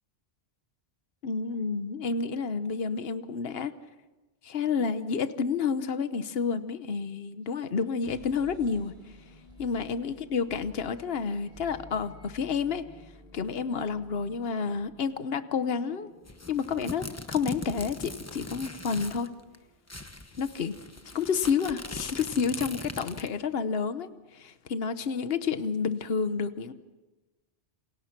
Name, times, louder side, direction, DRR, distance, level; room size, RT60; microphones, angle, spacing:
voice 1, 1.2-3.7 4.4-8.9 9.6-12.9 13.3-16.1 16.5-19.3 20.4-20.8 21.1-26.7, left 5 dB, 70° left, 12 dB, 1.2 m, -30 dB
sound 1, 7.8-21.6, left 1 dB, 30° right, 8.2 m, -54 dB
sound 2, 16.3-19.3 19.5-19.6 19.9-23.4, left 2 dB, 15° left, 1.1 m, -40 dB
28.5 x 27.0 x 6.0 m, 1.2 s
omnidirectional pair, 1.1 m